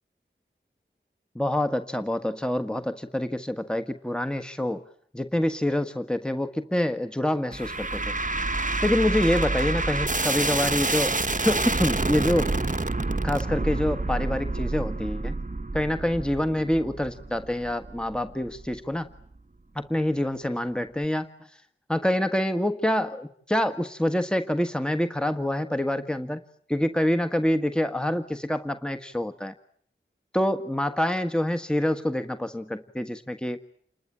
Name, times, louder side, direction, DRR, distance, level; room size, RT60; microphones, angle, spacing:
voice 1, 1.3-4.8 5.1-8.1 8.8-11.1 11.4-12.5 13.2-15.3 15.7-19.1 19.7-21.3 21.9-26.4 26.7-29.5 30.3-33.6, left 1 dB, 5° left, 9 dB, 1.6 m, -26 dB
sound 1, 7.5-18.8, right 2 dB, 40° right, 1.2 m, -28 dB
29.0 x 21.5 x 8.9 m, 0.62 s
wide cardioid pair, 40°, 21 cm